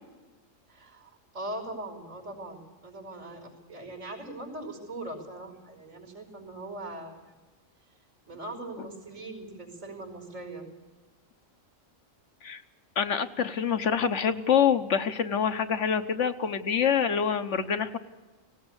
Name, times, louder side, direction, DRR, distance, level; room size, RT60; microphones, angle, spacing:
voice 1, 0.7-7.3 8.3-10.6, right 2 dB, 90° right, 4 dB, 5.5 m, -40 dB
voice 2, 13.0-18.0, left 7 dB, 65° left, 9 dB, 1.3 m, -26 dB
18.5 x 18.0 x 8.2 m, 1.2 s
omnidirectional pair, 1.3 m